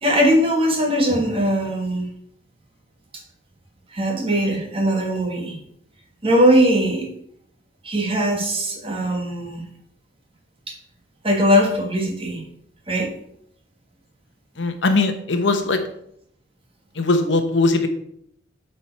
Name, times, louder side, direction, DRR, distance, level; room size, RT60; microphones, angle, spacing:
voice 1, 0.0-2.1 3.9-5.6 6.2-7.1 7.8-9.6 10.7-10.8 11.2-12.4 12.9-13.1, equal, 30° right, 2 dB, 1.5 m, -20 dB
voice 2, 14.6-15.8 16.9-17.9, left 3 dB, 70° left, 7 dB, 0.9 m, -20 dB
8.5 x 4.5 x 4.5 m, 0.70 s
head